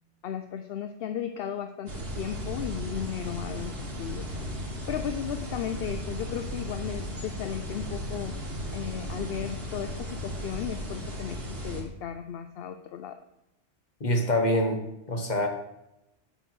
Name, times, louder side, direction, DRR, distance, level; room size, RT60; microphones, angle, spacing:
voice 1, 0.2-8.3 8.7-11.4 11.6-13.2, left 9 dB, 60° left, 9 dB, 0.7 m, -35 dB
sound 1, 1.9-11.8, equal, 50° right, 2.1 m, -36 dB
voice 2, 14.0-14.8 15.1-15.5, left 1 dB, 35° left, 4 dB, 1.5 m, -25 dB
7.7 x 7.1 x 6.0 m, 0.89 s
omnidirectional pair, 1.3 m